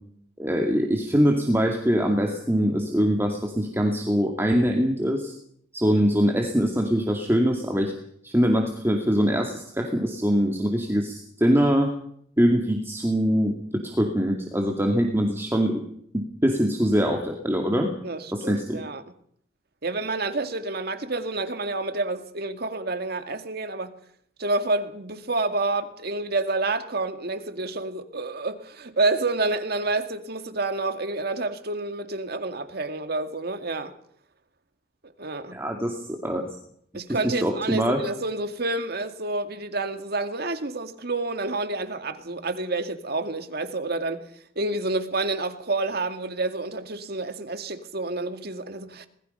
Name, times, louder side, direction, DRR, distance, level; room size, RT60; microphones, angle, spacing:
voice 1, 0.4-5.3 5.7-7.9 8.2-11.9 12.4-15.8 16.1-17.9 18.3-18.8 35.5-36.4 37.2-38.0, equal, 15° right, 2.3 m, -23 dB
voice 2, 18.0-19.0 19.8-23.9 24.4-33.9 35.2-35.6 36.9-44.3 44.6-49.1, right 2 dB, 55° right, 2.1 m, -29 dB
25.5 x 20.5 x 5.6 m
head